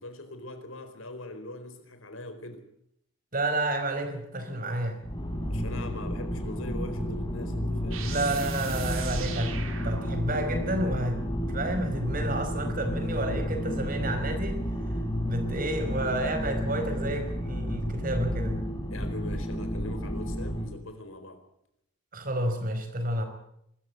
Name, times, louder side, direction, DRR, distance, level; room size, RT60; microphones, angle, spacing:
voice 1, 0.0-2.7 5.5-8.1 18.9-21.4, left 1 dB, 75° left, 8 dB, 4.3 m, -41 dB
voice 2, 3.3-5.0 8.1-11.2 11.5-14.6 15.2-18.6 22.1-23.2, right 1 dB, 40° right, 7 dB, 4.8 m, -30 dB
sound 1, 5.0-20.7, equal, 20° left, 4.0 m, -31 dB
sound 2, 7.9-11.3 14.0-17.8, right 8 dB, 75° right, 3.0 m, -43 dB
24.0 x 14.0 x 9.5 m, 0.75 s
head